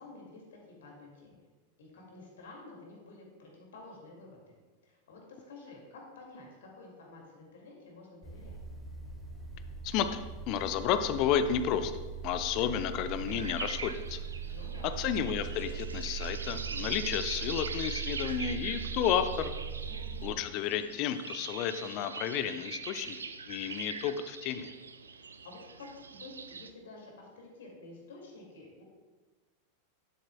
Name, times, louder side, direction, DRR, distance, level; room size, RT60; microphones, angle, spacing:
voice 1, 0.0-1.4 1.8-4.5 4.8-8.6 14.5-15.0 19.8-20.5 25.1-28.8, left 2 dB, 60° left, 0 dB, 2.2 m, -51 dB
sound 1, 8.2-20.3, right 7 dB, 5° left, 1.4 m, -40 dB
voice 2, 9.8-11.9 12.2-14.2 15.0-19.5 20.2-24.7, left 9 dB, 40° left, 11 dB, 0.5 m, -32 dB
sound 2, 13.3-26.7, right 5 dB, 75° right, 0.4 m, -43 dB
12.0 x 7.3 x 2.3 m, 1.3 s
figure-of-eight pair, 90°, 0 cm